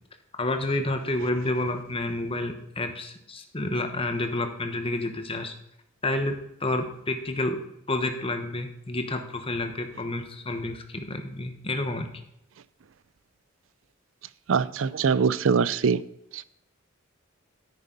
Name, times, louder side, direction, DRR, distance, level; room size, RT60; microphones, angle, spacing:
voice 1, 0.4-5.5 6.0-6.3 6.6-7.6 7.9-12.1, left 2 dB, 30° left, 6 dB, 1.1 m, -29 dB
voice 2, 14.5-16.0 16.3-16.4, right 5 dB, 70° right, 18 dB, 0.5 m, -23 dB
9.9 x 9.0 x 4.0 m, 0.79 s
head